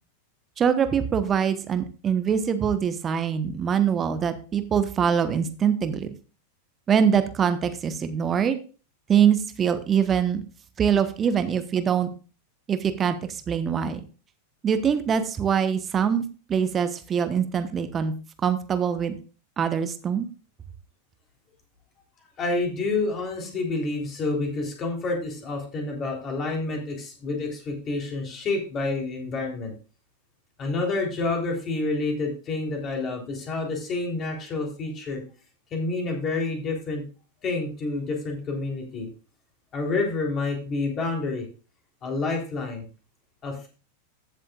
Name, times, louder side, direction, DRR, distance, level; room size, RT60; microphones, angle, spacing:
voice 1, 0.6-6.1 6.9-8.6 9.1-10.4 10.8-12.1 12.7-14.0 14.6-18.1 18.4-19.2 19.6-20.3, right 7 dB, 25° right, 10 dB, 1.1 m, -23 dB
voice 2, 22.4-29.7 30.6-35.2 35.7-37.0 37.4-39.1 39.7-41.5 42.0-42.8 43.4-43.7, left 3 dB, 30° left, 1 dB, 3.6 m, -28 dB
15.0 x 7.5 x 2.4 m, 0.35 s
figure-of-eight pair, 90°, 0 cm